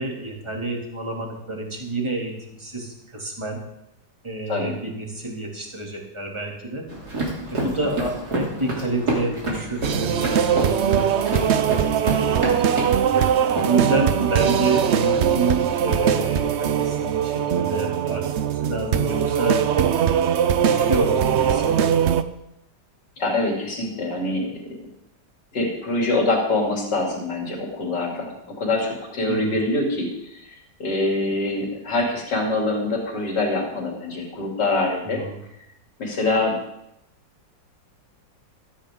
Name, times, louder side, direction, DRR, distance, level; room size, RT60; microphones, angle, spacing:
voice 1, 0.0-3.6 4.2-6.8 7.5-12.8 13.6-19.9 20.6-22.0 29.3-29.6 35.2-35.4, right 3 dB, 15° right, -1 dB, 2.7 m, -28 dB
sound 1, 6.9-15.9, right 1 dB, 55° right, 3.5 m, -30 dB
sound 2, 9.8-22.2, right 8 dB, 80° right, 0.6 m, -21 dB
voice 2, 23.2-24.6 25.5-35.2 36.0-36.6, left 2 dB, 65° left, -1 dB, 3.6 m, -25 dB
15.5 x 14.0 x 3.7 m, 0.83 s
omnidirectional pair, 2.0 m